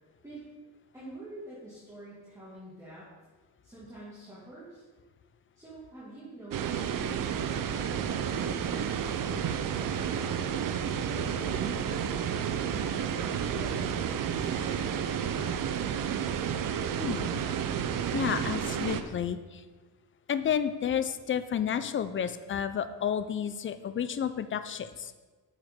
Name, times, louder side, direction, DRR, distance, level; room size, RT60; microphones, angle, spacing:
voice 1, 0.9-3.1 3.6-4.8 5.6-10.5 11.0-15.5, right 1 dB, 10° right, -10 dB, 1.9 m, -46 dB
sound 1, 6.5-19.0, right 8 dB, 55° right, 0.6 m, -31 dB
voice 2, 17.0-17.5 18.1-19.6 20.3-25.1, left 8 dB, 35° left, 11 dB, 0.4 m, -31 dB
6.6 x 6.2 x 3.6 m, 1.3 s
cardioid pair, 110°, 39 cm